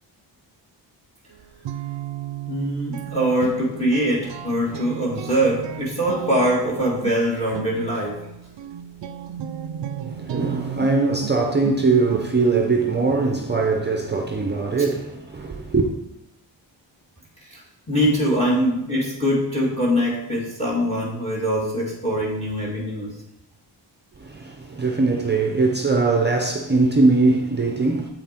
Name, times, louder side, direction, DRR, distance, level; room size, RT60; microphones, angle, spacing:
Guitar, 1.3-12.6, right 10 dB, 70° right, 0.6 m, -34 dB
voice 1, 2.5-8.2 17.4-23.1, equal, 15° left, 1.7 m, -23 dB
voice 2, 10.0-15.9 24.2-28.1, right 3 dB, 25° right, 0.6 m, -21 dB
7.7 x 5.7 x 4.3 m
wide cardioid pair, 115°, 45 cm